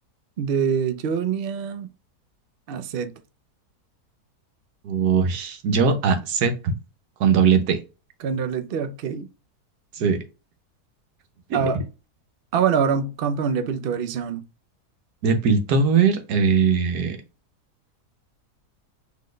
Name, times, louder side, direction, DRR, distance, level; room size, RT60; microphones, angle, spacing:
voice 1, 0.4-1.9 2.7-3.1 8.2-9.3 11.5-11.8 12.5-14.4, right 6 dB, 60° right, 0.6 m, -24 dB
voice 2, 4.8-6.7 7.2-7.8 9.9-10.2 11.5-11.7 15.2-17.2, right 5 dB, 80° right, 1.4 m, -20 dB
4.2 x 3.2 x 3.2 m
omnidirectional pair, 1.7 m